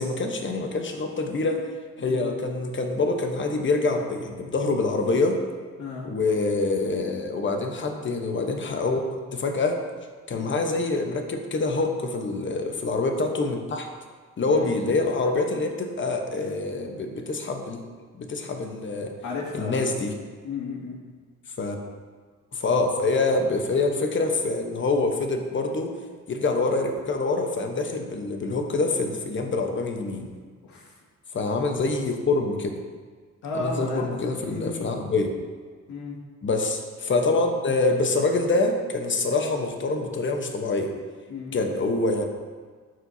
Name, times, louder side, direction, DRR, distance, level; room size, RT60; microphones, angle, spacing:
voice 1, 0.0-1.6 2.0-5.4 6.0-9.8 10.3-13.9 14.4-17.8 18.1-19.1 19.5-20.1 21.6-21.8 22.5-25.9 26.3-30.3 31.3-32.8 33.5-35.3 36.4-40.9 41.5-42.2, left 3 dB, 40° left, 4 dB, 1.1 m, -25 dB
voice 2, 2.0-2.3 5.8-6.0 10.3-10.5 14.5-14.7 19.2-19.9 20.4-21.0 30.6-30.9 33.4-34.1 34.4-34.9 35.9-36.2 41.3-41.6, left 3 dB, 70° left, -4 dB, 2.1 m, -33 dB
12.0 x 4.7 x 2.8 m, 1.5 s
cardioid pair, 80°, 30 cm